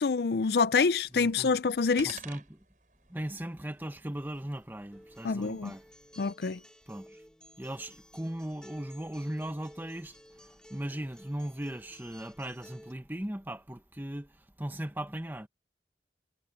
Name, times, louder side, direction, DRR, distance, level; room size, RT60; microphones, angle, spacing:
voice 1, 0.0-2.2 5.2-5.7 6.2-6.6, left 4 dB, 65° left, 0.5 m, -26 dB
sound 1, 0.8-6.3, right 6 dB, 45° right, 7.7 m, -53 dB
voice 2, 1.1-1.5 2.0-2.6 3.1-5.8 6.9-7.1 7.6-10.1 10.7-14.3 14.6-15.5, right 1 dB, 10° right, 1.0 m, -38 dB
Acoustic guitar, 4.9-12.9, equal, 5° left, 2.2 m, -54 dB
head